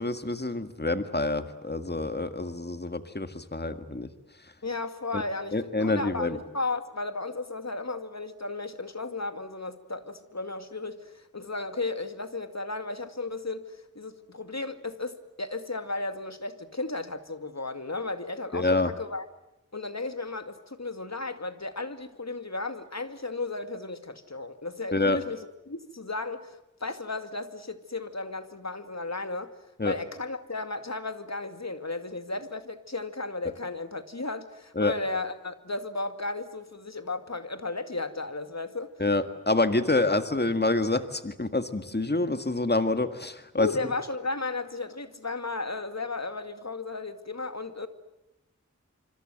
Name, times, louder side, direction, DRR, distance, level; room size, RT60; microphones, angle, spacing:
voice 1, 0.0-4.1 5.1-5.2 5.5-6.4 18.5-18.9 24.9-25.2 29.8-29.9 34.8-34.9 39.0-43.7, left 2 dB, 35° left, 10 dB, 1.8 m, -27 dB
voice 2, 4.6-19.2 19.7-29.5 29.8-38.9 39.9-40.1 43.6-47.9, left 3 dB, 55° left, 9 dB, 2.3 m, -34 dB
26.0 x 26.0 x 7.9 m, 0.95 s
wide cardioid pair, 45°, 31 cm